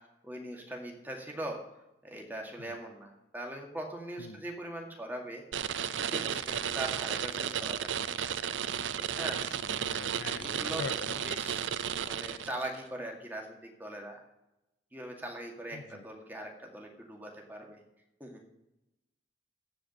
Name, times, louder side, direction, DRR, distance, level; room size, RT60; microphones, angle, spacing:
voice 1, 0.2-1.6 2.0-5.4 5.9-8.0 9.2-9.5 10.2-11.0 11.2-11.7 12.0-14.2 14.9-17.8 18.2-18.5, right 1 dB, 10° right, 1 dB, 2.1 m, -41 dB
sound 1, 5.5-12.8, right 8 dB, 85° right, 0.6 m, -33 dB
voice 2, 9.4-11.6 15.7-16.0, left 5 dB, 75° left, 13 dB, 0.5 m, -44 dB
14.5 x 5.1 x 7.9 m, 0.90 s
head